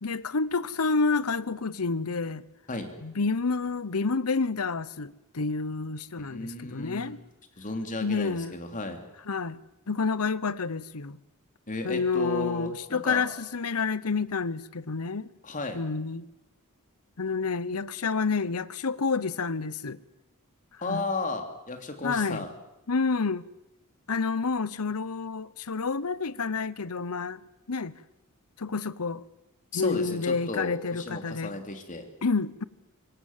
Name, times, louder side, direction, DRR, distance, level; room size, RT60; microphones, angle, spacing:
voice 1, 0.0-2.4 3.0-7.2 8.0-8.6 9.3-9.6 9.9-11.2 11.8-15.3 15.7-16.3 17.2-20.0 20.9-21.0 22.0-22.5 22.9-23.4 24.1-27.4 27.7-27.9 28.6-29.2 29.7-31.5 32.2-32.6, left 4 dB, 80° left, 0.9 m, -29 dB
voice 2, 6.2-7.1 7.6-9.0 11.7-13.3 15.4-15.8 20.8-22.5 29.7-32.0, left 2 dB, 35° left, 3.2 m, -34 dB
26.0 x 23.0 x 7.4 m
head